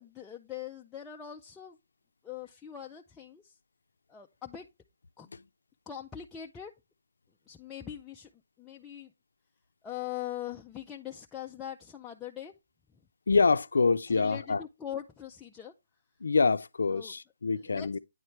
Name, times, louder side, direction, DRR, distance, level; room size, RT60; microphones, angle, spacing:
voice 1, 0.0-1.8 2.2-3.6 4.1-4.7 5.2-5.3 5.9-6.7 7.5-8.3 8.6-9.1 9.8-12.5 14.1-15.7 16.9-17.1 17.5-18.0, left 10 dB, 5° left, 0.3 m, -42 dB
voice 2, 13.3-14.6 16.2-18.0, left 4 dB, 80° left, 0.4 m, -26 dB
9.2 x 3.2 x 4.5 m
hypercardioid pair, 170°, 0 cm